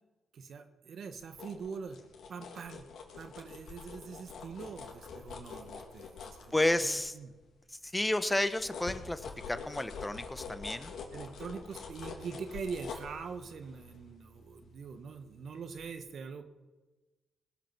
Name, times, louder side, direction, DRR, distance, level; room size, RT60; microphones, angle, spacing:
voice 1, 0.3-2.0 2.3-2.8 3.1-6.5 6.8-7.3 11.1-16.4, right 5 dB, 65° right, 9 dB, 1.6 m, -43 dB
sound 1, 1.1-7.4 7.8-15.4 15.8-15.9, left 5 dB, 70° left, 3.3 m, -46 dB
voice 2, 6.5-7.2 7.7-10.9, left 1 dB, 15° left, 12 dB, 1.2 m, -31 dB
20.0 x 6.9 x 8.0 m, 1.2 s
supercardioid pair, 55°, 0 cm